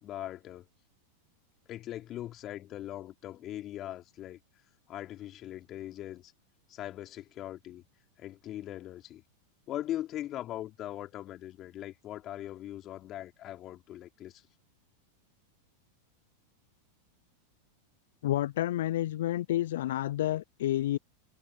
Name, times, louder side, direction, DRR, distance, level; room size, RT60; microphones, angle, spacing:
voice 1, 0.0-0.7 1.7-4.4 4.9-6.3 6.7-7.8 8.2-9.2 9.7-14.4, left 13 dB, 40° left, 3.3 m, -40 dB
voice 2, 18.2-21.0, left 13 dB, 65° left, 0.3 m, -29 dB
hypercardioid pair, 95°, 0 cm